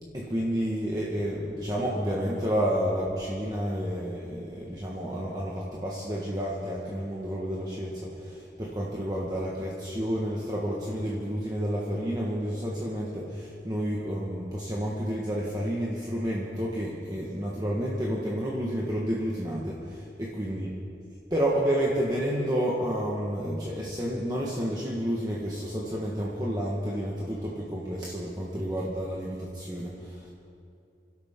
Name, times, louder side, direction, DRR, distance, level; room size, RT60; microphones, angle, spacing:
voice 1, 0.1-20.7 21.3-30.3, equal, 20° right, -5 dB, 1.5 m, -30 dB
26.5 x 12.5 x 3.8 m, 2.6 s
head